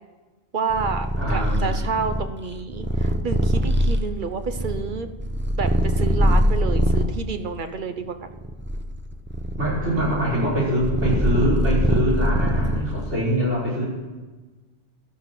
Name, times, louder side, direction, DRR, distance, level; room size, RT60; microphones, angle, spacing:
voice 1, 0.5-5.1 5.6-8.3, right 5 dB, 50° right, 9 dB, 1.0 m, -29 dB
Purr, 0.7-7.2 7.9-13.1, equal, 10° right, 0.8 m, -23 dB
voice 2, 1.2-2.1 9.6-13.9, equal, 80° right, -5 dB, 5.4 m, -24 dB
15.5 x 12.0 x 6.1 m, 1.3 s
omnidirectional pair, 1.1 m